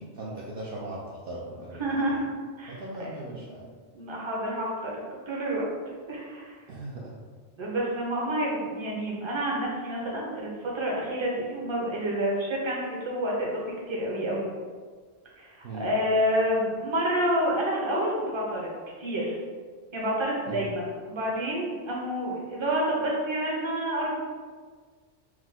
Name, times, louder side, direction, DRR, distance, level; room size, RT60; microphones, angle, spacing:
voice 1, 0.0-1.9 2.7-3.7 6.7-7.1 15.6-15.9 20.5-20.6, right 2 dB, 60° right, -5 dB, 0.7 m, -38 dB
voice 2, 1.8-2.2 2.6-3.1 3.9-4.9 5.3-5.6 6.1-6.6 7.6-13.6 13.9-14.5 15.4-18.7 19.0-19.4 19.9-24.2, equal, 30° right, -3 dB, 0.8 m, -28 dB
4.7 x 2.1 x 3.7 m, 1.6 s
omnidirectional pair, 1.2 m